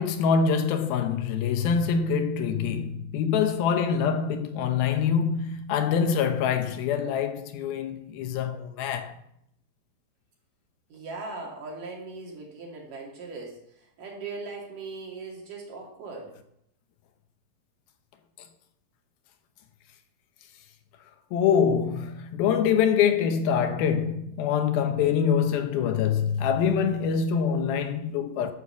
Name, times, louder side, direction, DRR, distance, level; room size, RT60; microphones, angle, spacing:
voice 1, 0.0-9.1 21.3-28.5, left 7 dB, 80° left, 2.8 m, -25 dB
voice 2, 10.9-16.4, right 3 dB, 65° right, 4.0 m, -39 dB
11.5 x 6.5 x 7.1 m
omnidirectional pair, 4.3 m